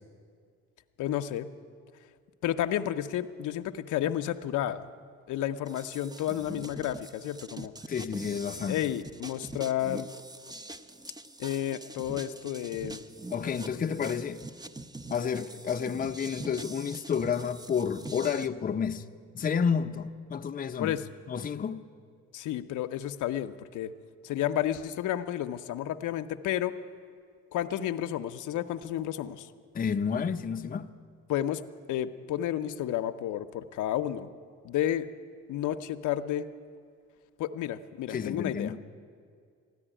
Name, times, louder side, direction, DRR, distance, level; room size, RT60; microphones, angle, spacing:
voice 1, 1.0-1.5 2.4-4.8 5.3-7.7 8.7-10.1 11.4-13.0 13.7-13.8 20.8-21.0 22.3-23.9 24.2-26.7 27.5-29.5 31.3-31.6 31.9-34.3 34.6-35.1 35.5-36.5 37.4-38.8, left 11 dB, 80° left, 0.7 m, -31 dB
sound 1, 5.6-18.5, right 2 dB, 15° right, 0.6 m, -44 dB
voice 2, 7.9-8.8 13.3-14.4 15.1-19.0 19.3-21.0 21.3-21.8 29.7-30.9 38.1-38.8, left 6 dB, 30° left, 0.6 m, -30 dB
14.0 x 10.0 x 10.0 m
cardioid pair, 90°, 30 cm